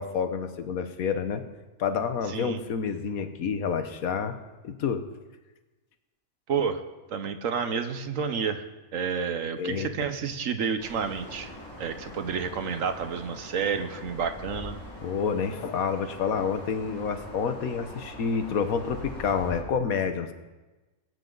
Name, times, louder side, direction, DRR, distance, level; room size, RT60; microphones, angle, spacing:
voice 1, 0.0-1.4 1.8-4.4 4.6-5.0 9.6-9.9 15.0-20.3, left 6 dB, 90° left, 9 dB, 1.4 m, -28 dB
voice 2, 2.3-2.6 6.5-6.8 7.1-8.6 8.9-11.5 11.8-14.7, right 6 dB, 70° right, 9 dB, 1.3 m, -30 dB
sound 1, 10.8-19.6, left 1 dB, 20° left, 5.2 m, -43 dB
21.5 x 9.3 x 3.9 m, 1.2 s
omnidirectional pair, 1.4 m